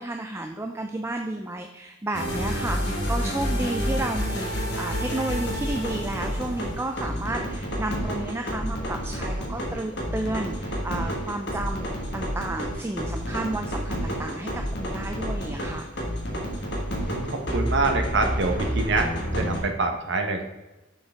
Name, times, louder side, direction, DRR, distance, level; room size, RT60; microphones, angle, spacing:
voice 1, 0.0-15.9, right 2 dB, 15° right, 4 dB, 0.4 m, -32 dB
sound 1, 2.1-19.6, equal, 60° left, 1.5 m, -29 dB
voice 2, 16.9-20.4, right 3 dB, 60° right, 4 dB, 0.9 m, -26 dB
6.4 x 5.9 x 3.5 m, 1.0 s
head